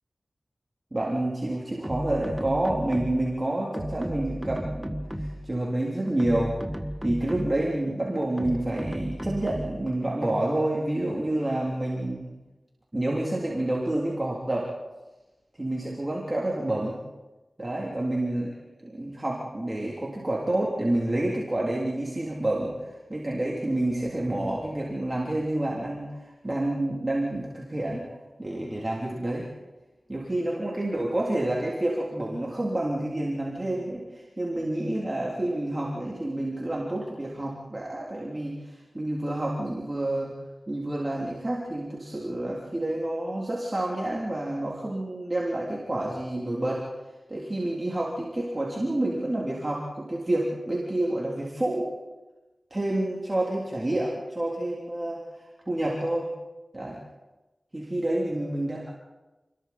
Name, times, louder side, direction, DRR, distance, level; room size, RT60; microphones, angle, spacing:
voice 1, 0.9-6.5 7.0-12.3 12.9-14.7 15.6-17.0 17.6-18.5 18.8-22.7 23.1-26.2 26.4-28.1 28.4-29.5 30.1-40.3 40.7-46.9 47.3-51.9 52.7-55.2 55.7-56.3 56.7-57.0 57.7-58.9, right 1 dB, 30° right, -3 dB, 3.4 m, -28 dB
sound 1, 1.8-3.4 3.7-5.5 6.1-7.7 8.4-9.9, equal, 5° right, 1.5 m, -34 dB
29.5 x 21.0 x 4.4 m, 1.1 s
wide cardioid pair, 65°, 0 cm